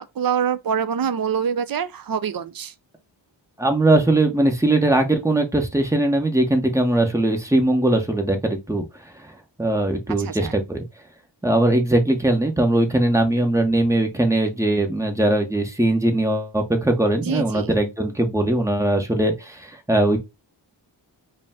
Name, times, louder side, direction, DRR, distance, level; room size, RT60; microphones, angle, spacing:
voice 1, 0.0-2.7 10.2-10.5 17.2-17.7, right 7 dB, 50° right, 0.5 m, -25 dB
voice 2, 3.6-8.8 9.6-10.8 11.4-20.2, right 1 dB, 5° right, 0.9 m, -20 dB
5.0 x 2.2 x 3.5 m
wide cardioid pair, 100°, 45 cm